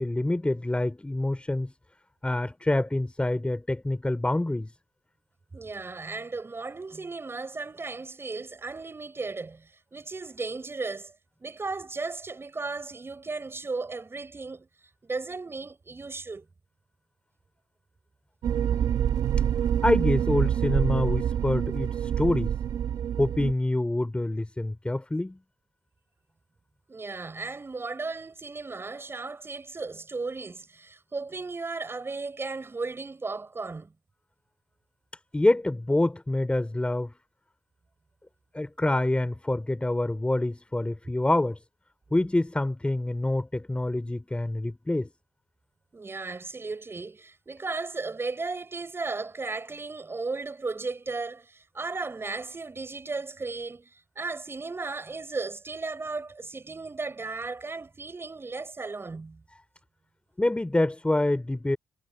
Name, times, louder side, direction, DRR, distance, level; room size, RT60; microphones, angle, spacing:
voice 1, 0.0-1.7 2.2-4.7 19.8-22.5 23.2-25.4 35.3-37.1 38.5-41.6 42.1-45.1 60.4-61.8, left 1 dB, 15° left, 3.3 m, -26 dB
voice 2, 5.5-11.1 11.4-14.7 15.0-16.4 26.9-33.9 45.9-59.4, right 3 dB, 35° right, 6.9 m, -35 dB
sound 1, 18.4-23.5, right 9 dB, 80° right, 2.2 m, -26 dB
supercardioid pair, 55°, 7 cm